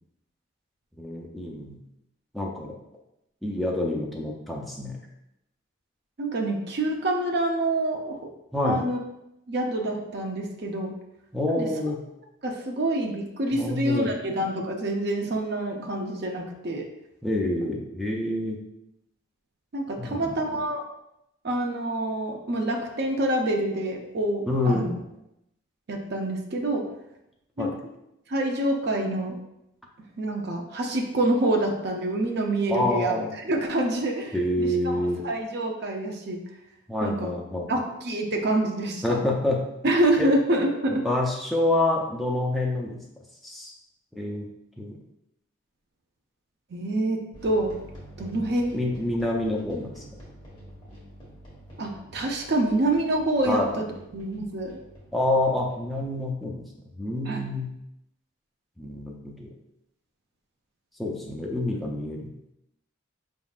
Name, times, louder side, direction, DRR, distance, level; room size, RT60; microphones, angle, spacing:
voice 1, 1.0-1.8 2.3-2.8 3.4-5.0 8.5-8.8 11.3-12.0 13.5-14.1 17.2-18.6 20.0-20.4 24.5-24.9 27.6-27.8 32.7-33.3 34.3-35.2 36.9-37.7 39.0-39.6 40.2-40.3 41.0-43.0 43.4-43.7 44.2-44.5 44.8-45.0 48.7-50.0 53.5-53.7 55.1-56.7 57.0-57.7 58.8-59.5 61.0-62.3, left 1 dB, ahead, -3 dB, 0.4 m, -27 dB
voice 2, 6.2-8.2 8.6-9.0 9.5-10.9 11.5-11.7 12.4-16.9 19.7-20.8 21.4-24.9 25.9-26.9 27.6-27.7 28.3-29.4 30.2-33.2 33.4-36.4 37.0-37.3 37.7-39.2 39.8-41.0 46.7-47.7 48.2-48.9 51.8-53.8 54.1-54.8 57.3-57.4, right 1 dB, 55° right, 1 dB, 0.5 m, -26 dB
sound 1, 47.3-56.0, equal, 25° left, 1.2 m, -47 dB
5.0 x 3.6 x 2.4 m, 0.85 s
head